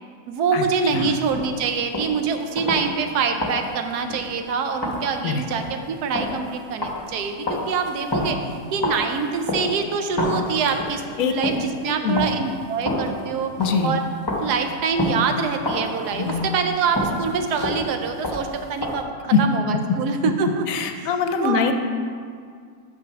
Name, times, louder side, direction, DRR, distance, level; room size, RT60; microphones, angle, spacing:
voice 1, 0.3-8.4 8.7-13.5 13.8-14.0 14.4-20.7 21.0-21.1 21.4-21.7, right 5 dB, 85° right, 6 dB, 1.2 m, -25 dB
sound 1, 1.3-2.3 2.6-3.1 3.4-4.4 4.8-9.9 10.2-11.8 12.2-14.0 14.3-19.0, left 1 dB, 20° left, 0.7 m, -29 dB
voice 2, 11.9-12.3 13.6-14.0 16.1-16.4 19.3-19.4 20.7-21.7, left 5 dB, 65° left, 6 dB, 0.9 m, -22 dB
6.2 x 6.1 x 5.8 m, 2.1 s
omnidirectional pair, 1.7 m